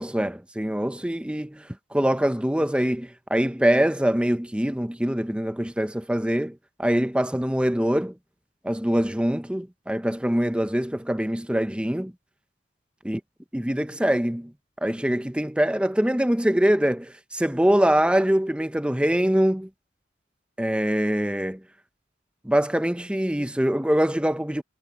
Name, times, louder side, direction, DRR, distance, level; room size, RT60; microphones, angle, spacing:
voice 1, 0.0-8.2 8.6-12.1 13.0-13.2 13.5-14.5 14.8-19.7 20.6-21.6 22.4-24.6, equal, 5° right, 0.7 m, -24 dB
head